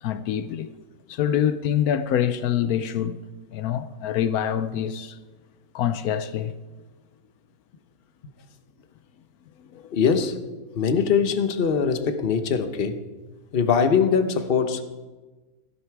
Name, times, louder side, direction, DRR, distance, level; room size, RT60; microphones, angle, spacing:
voice 1, 0.0-0.8 1.1-3.2 3.5-5.2 5.7-6.5 9.7-9.9, left 9 dB, 80° left, 1.1 m, -25 dB
voice 2, 9.9-10.4 10.7-13.0 13.5-14.8, left 6 dB, 45° left, 1.0 m, -22 dB
16.5 x 13.5 x 4.7 m
omnidirectional pair, 1.6 m